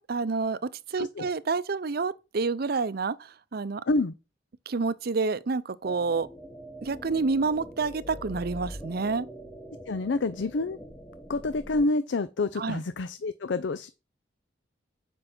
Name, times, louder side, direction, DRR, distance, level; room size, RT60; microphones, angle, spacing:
voice 1, 0.0-3.8 4.7-6.3 6.8-9.3 12.6-12.8, right 4 dB, 55° right, 0.6 m, -28 dB
sound 1, 5.8-11.9, equal, 10° left, 1.3 m, -43 dB
voice 2, 9.9-10.8 11.3-13.9, left 2 dB, 75° left, 0.5 m, -28 dB
7.8 x 5.5 x 5.9 m
head